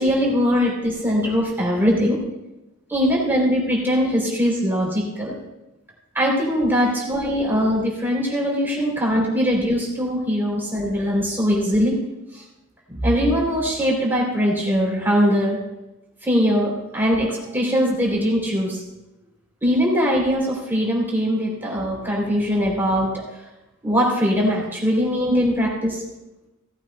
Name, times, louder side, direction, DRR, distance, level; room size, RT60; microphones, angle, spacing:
voice 1, 0.0-2.2 2.9-5.3 6.1-11.9 12.3-12.4 12.9-15.6 16.2-18.8 19.6-23.1 23.8-26.0, equal, 10° right, -3 dB, 3.3 m, -21 dB
17.0 x 15.0 x 2.3 m, 0.98 s
head